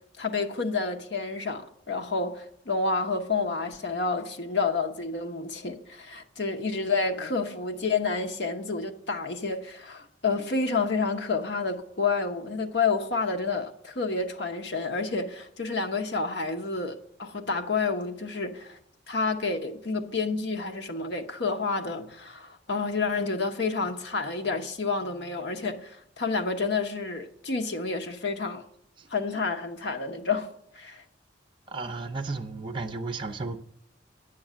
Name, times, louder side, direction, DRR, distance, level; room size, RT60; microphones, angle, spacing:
voice 1, 0.0-18.8 19.1-28.6 29.1-30.5 30.7-31.0, left 4 dB, 65° left, 1.0 m, -29 dB
voice 2, 31.7-33.6, right 3 dB, 25° right, 0.6 m, -34 dB
9.0 x 6.3 x 7.4 m
head